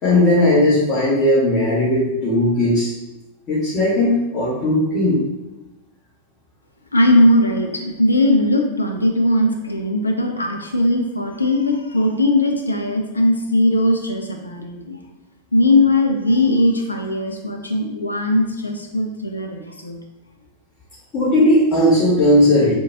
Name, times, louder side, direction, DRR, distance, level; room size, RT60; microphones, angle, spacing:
voice 1, 0.0-2.9 3.5-5.2 21.1-22.7, left 1 dB, 35° left, -10 dB, 1.5 m, -16 dB
voice 2, 6.9-15.0 15.5-20.0, left 1 dB, 80° left, 3 dB, 0.6 m, -19 dB
4.5 x 3.5 x 2.8 m, 1.0 s
figure-of-eight pair, 90°, 0 cm